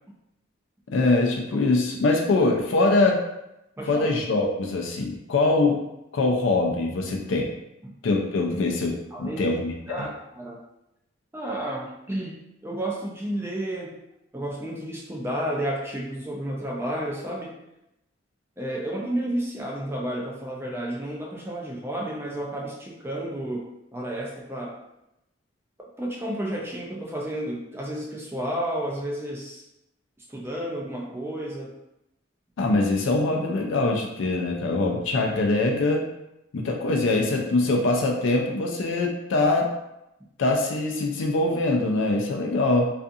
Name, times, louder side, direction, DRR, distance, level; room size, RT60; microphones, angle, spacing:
voice 1, 0.9-3.2 3.9-5.8 6.1-7.5 8.0-10.1 32.6-36.1 36.5-39.7 40.4-42.9, left 2 dB, 70° left, 1 dB, 0.4 m, -23 dB
voice 2, 3.8-4.1 9.1-9.6 9.9-10.6 11.3-12.3 12.6-14.0 14.3-17.5 18.6-24.8 26.0-29.6 30.3-31.7, right 1 dB, 10° right, -3 dB, 0.4 m, -31 dB
2.5 x 2.4 x 2.6 m, 0.88 s
head